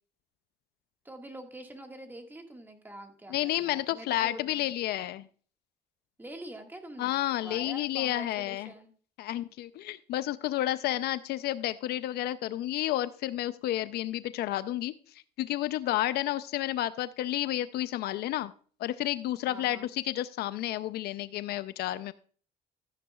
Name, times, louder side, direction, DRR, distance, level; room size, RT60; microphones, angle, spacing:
voice 1, 1.0-4.7 6.2-7.1 7.4-8.9 19.4-19.9, right 1 dB, 10° right, 4 dB, 1.7 m, -45 dB
voice 2, 3.3-5.3 7.0-8.7 9.2-14.9 15.4-18.5 18.8-22.1, left 14 dB, 70° left, 15 dB, 0.5 m, -31 dB
14.0 x 9.3 x 2.3 m, 0.43 s
cardioid pair, 110°, 17 cm